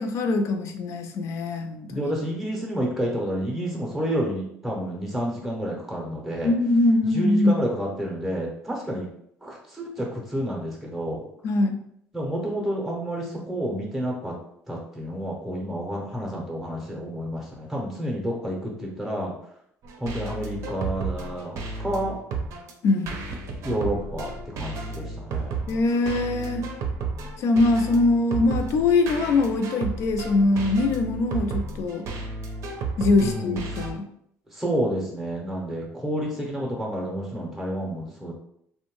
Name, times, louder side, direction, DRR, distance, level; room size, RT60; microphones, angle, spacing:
voice 1, 0.0-2.1 6.4-7.6 11.4-11.8 22.8-23.1 25.7-26.6 27.4-32.1 33.0-34.1, left 2 dB, 60° left, 6 dB, 0.4 m, -22 dB
voice 2, 1.9-6.5 7.1-9.1 9.4-11.2 12.1-14.3 14.7-19.3 20.0-22.2 23.6-25.6 33.2-33.6 34.5-38.3, equal, ahead, -2 dB, 0.6 m, -30 dB
sound 1, 19.8-33.9, right 3 dB, 65° right, 0.5 m, -33 dB
2.6 x 2.1 x 3.0 m, 0.70 s
cardioid pair, 120°, 5 cm